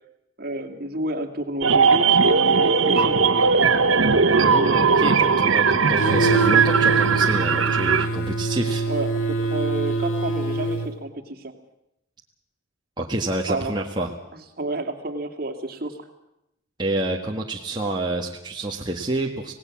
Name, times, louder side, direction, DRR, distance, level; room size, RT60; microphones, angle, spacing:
voice 1, 0.4-3.2 8.9-11.5 13.5-13.7 14.6-16.0, right 2 dB, 50° right, 5 dB, 2.7 m, -30 dB
sound 1, 1.6-8.1, right 5 dB, 85° right, 1.4 m, -18 dB
voice 2, 4.4-8.9 13.0-14.1 16.8-19.5, right 2 dB, 20° right, -1 dB, 1.7 m, -28 dB
sound 2, 6.0-10.9, right 3 dB, 85° left, 2.4 m, -24 dB
26.0 x 18.0 x 7.4 m, 0.84 s
head